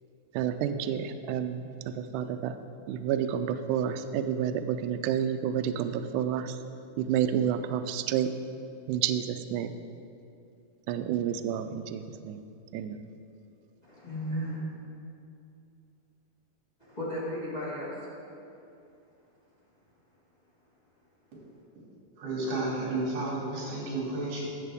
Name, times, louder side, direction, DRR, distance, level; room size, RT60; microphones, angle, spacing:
voice 1, 0.3-2.6 2.9-6.6 7.0-8.3 8.9-9.8 10.9-12.4 12.7-13.0, right 9 dB, 85° right, 8 dB, 1.8 m, -30 dB
voice 2, 13.8-14.6 16.8-18.1, equal, 35° left, -9 dB, 0.6 m, -35 dB
voice 3, 22.1-24.5, right 2 dB, 65° right, -5 dB, 3.8 m, -32 dB
12.5 x 7.4 x 3.5 m, 2.6 s
omnidirectional pair, 4.1 m